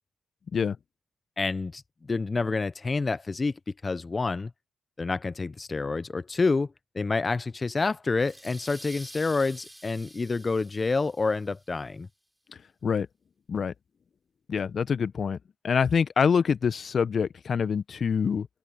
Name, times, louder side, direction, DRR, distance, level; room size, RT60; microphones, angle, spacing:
voice 1, 1.4-1.8 2.1-3.5 3.8-4.5 5.0-6.7 6.9-12.1, left 3 dB, 35° left, 1.1 m, -28 dB
sound 1, 8.2-11.6, right 1 dB, 5° right, 6.1 m, -48 dB
voice 2, 14.5-15.4 15.6-18.5, left 6 dB, 55° left, 1.2 m, -25 dB
open air
hypercardioid pair, 45°, 0 cm